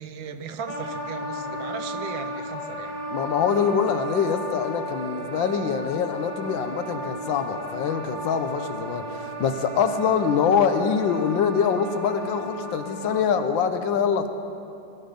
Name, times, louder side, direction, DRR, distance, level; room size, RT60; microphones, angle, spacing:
voice 1, 0.0-3.0, right 6 dB, 85° right, 8 dB, 1.6 m, -37 dB
Wind instrument woodwind instrument, 0.7-13.6, equal, 15° left, 2.3 m, -35 dB
voice 2, 3.1-14.3, left 7 dB, 85° left, 8 dB, 1.6 m, -24 dB
21.0 x 12.5 x 5.2 m, 2.8 s
omnidirectional pair, 2.0 m